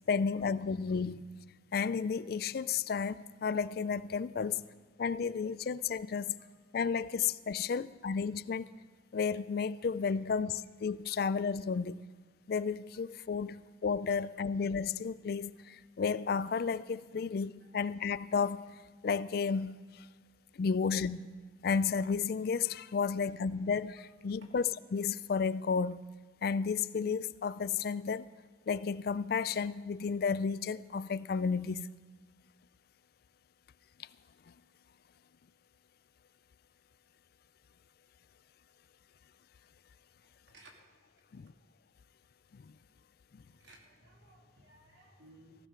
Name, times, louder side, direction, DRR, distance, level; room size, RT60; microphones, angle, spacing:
voice 1, 0.1-1.2 1.7-4.6 5.0-6.4 6.7-8.7 9.1-12.0 12.5-18.7 19.0-20.0 20.6-21.3 21.6-26.0 26.4-28.3 28.7-31.9 41.3-41.5 42.5-42.6, left 5 dB, 55° left, 0.3 m, -32 dB
voice 2, 40.2-40.7 43.5-45.6, right 1 dB, 80° right, 2.7 m, -60 dB
18.0 x 15.0 x 3.7 m
head